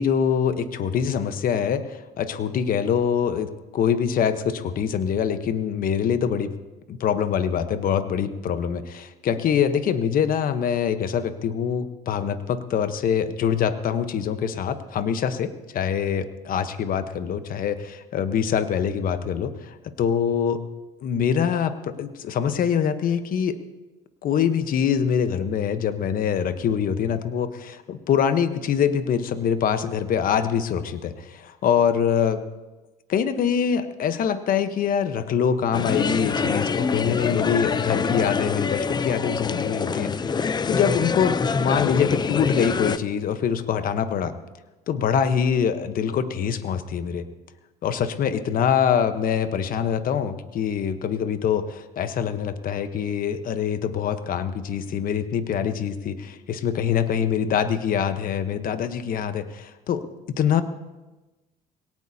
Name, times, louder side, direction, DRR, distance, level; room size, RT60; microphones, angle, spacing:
voice 1, 0.0-6.5 6.9-20.6 21.0-23.6 24.2-32.4 33.1-44.3 44.9-47.3 47.8-60.0 60.4-60.6, left 8 dB, 55° left, 10 dB, 1.0 m, -24 dB
sound 1, 35.7-43.0, left 5 dB, 25° left, 0.5 m, -25 dB
21.0 x 18.0 x 2.8 m, 1.1 s
cardioid pair, 110°, 17 cm